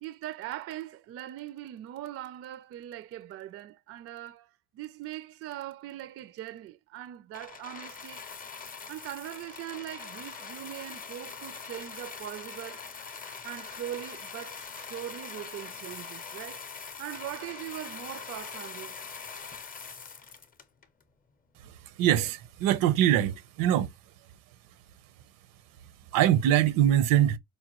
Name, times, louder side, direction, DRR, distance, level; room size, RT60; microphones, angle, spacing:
voice 1, 0.0-8.2 8.9-12.9 13.4-16.7 17.0-19.0, right 13 dB, 45° right, 0.4 m, -41 dB
sound 1, 7.3-21.0 21.8-21.9, left 5 dB, 25° left, 0.6 m, -43 dB
voice 2, 22.0-23.9 26.1-27.4, right 11 dB, 75° right, 0.7 m, -23 dB
5.1 x 2.2 x 2.9 m
cardioid pair, 125°, 34 cm